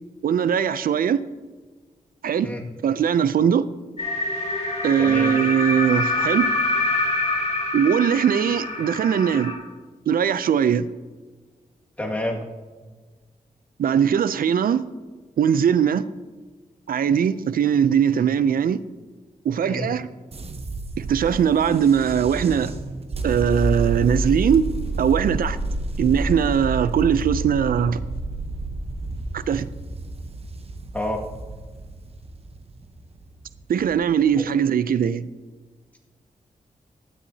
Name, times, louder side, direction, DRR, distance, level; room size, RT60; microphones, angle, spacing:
voice 1, 0.2-1.2 2.2-2.5 2.8-3.7 4.8-6.5 7.7-9.6 10.1-10.9 13.8-14.8 15.4-16.0 16.9-18.8 19.4-20.1 21.0-22.7 23.2-24.7 25.0-25.6 26.0-28.0 29.3-29.7 33.7-35.3, right 8 dB, 90° right, 0.4 m, -20 dB
sound 1, 4.0-9.5, left 2 dB, 50° left, 2.6 m, -25 dB
voice 2, 5.0-5.3 12.0-12.4 18.1-18.3 19.7-19.9 30.9-31.2, left 1 dB, 10° left, 1.9 m, -28 dB
sound 2, 20.3-34.5, right 2 dB, 45° right, 0.9 m, -30 dB
15.5 x 10.0 x 2.8 m
wide cardioid pair, 80°, 15 cm